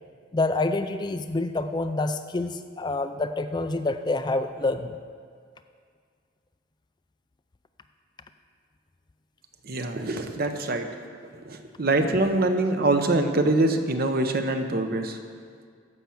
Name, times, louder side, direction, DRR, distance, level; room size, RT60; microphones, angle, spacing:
voice 1, 0.3-5.0, left 2 dB, 20° left, 9 dB, 0.4 m, -27 dB
voice 2, 9.7-10.9 11.5-15.2, right 2 dB, 50° right, 6 dB, 0.8 m, -24 dB
13.5 x 5.8 x 7.1 m, 2.1 s
head